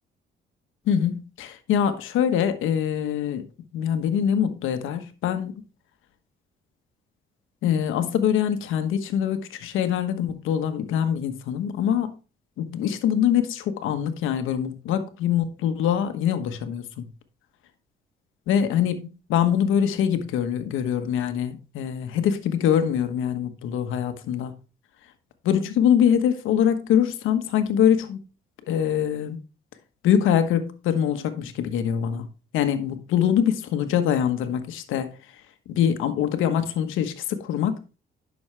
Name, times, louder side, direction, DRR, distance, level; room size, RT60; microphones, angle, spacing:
voice 1, 0.9-3.4 3.7-5.6 7.6-12.2 12.6-17.0 18.5-24.5 25.4-28.2 28.7-29.4 30.0-32.3 32.5-37.8, left 9 dB, 90° left, 1.2 m, -24 dB
11.0 x 6.3 x 3.3 m
cardioid pair, 90°, 20 cm